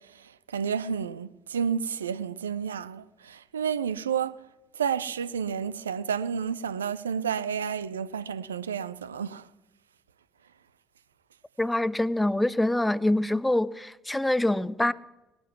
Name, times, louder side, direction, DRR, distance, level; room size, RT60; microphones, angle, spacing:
voice 1, 0.5-3.0 3.5-4.3 4.8-9.4, right 7 dB, 85° right, 0.4 m, -30 dB
voice 2, 11.6-14.9, left 1 dB, 10° left, 0.6 m, -25 dB
19.0 x 9.0 x 6.1 m
hypercardioid pair, 55°, 0 cm